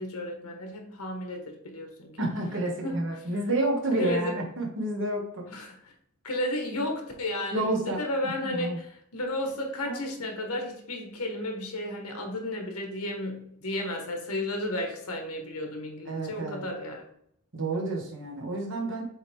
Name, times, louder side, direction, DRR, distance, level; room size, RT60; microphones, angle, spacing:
voice 1, 0.0-2.2 2.8-3.2 4.0-4.3 5.5-5.9 6.2-17.0, left 1 dB, 85° left, 2 dB, 1.6 m, -33 dB
voice 2, 2.2-5.5 7.5-8.0 8.4-8.8 9.8-10.0 16.1-16.6 17.5-19.0, right 2 dB, 60° right, 0 dB, 1.7 m, -29 dB
7.6 x 3.5 x 3.6 m, 0.72 s
head